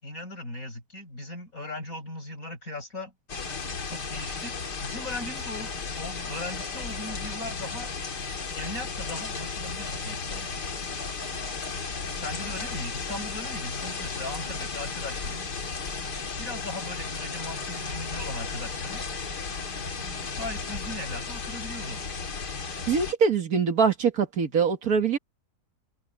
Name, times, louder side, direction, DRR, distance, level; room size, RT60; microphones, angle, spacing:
voice 1, 0.0-3.1 3.9-7.9 8.5-10.5 12.2-15.5 16.4-19.0 20.3-22.0, left 1 dB, 55° left, 8.0 m, -38 dB
sound 1, 3.3-23.1, left 4 dB, 85° left, 2.8 m, -34 dB
voice 2, 22.9-25.2, right 5 dB, 65° right, 2.2 m, -23 dB
open air
omnidirectional pair, 1.7 m